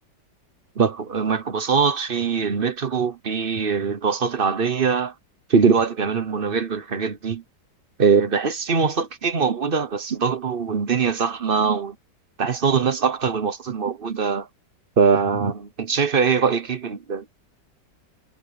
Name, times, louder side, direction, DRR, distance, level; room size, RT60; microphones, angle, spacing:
voice 1, 0.8-5.1 5.5-7.4 8.0-11.9 12.4-14.5 15.0-17.3, right 5 dB, 35° right, 1.0 m, -22 dB
omnidirectional pair, 1.9 m